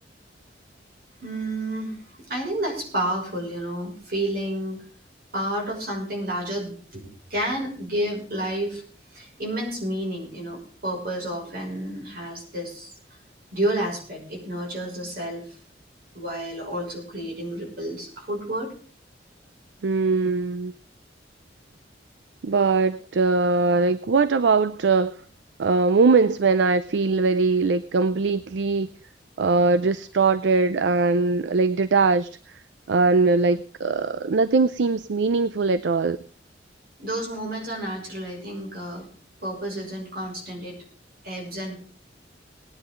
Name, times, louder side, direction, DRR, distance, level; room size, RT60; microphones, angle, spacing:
voice 1, 1.2-2.0 2.3-4.8 5.3-8.8 9.1-12.9 13.5-15.5 16.1-18.7 37.0-39.1 39.4-40.8 41.2-41.7, right 1 dB, 55° right, 1 dB, 6.0 m, -30 dB
voice 2, 19.8-20.7 22.4-25.2 25.6-28.9 29.4-32.3 32.9-36.2, right 4 dB, 75° right, 15 dB, 0.5 m, -21 dB
19.5 x 9.9 x 3.8 m, 0.42 s
head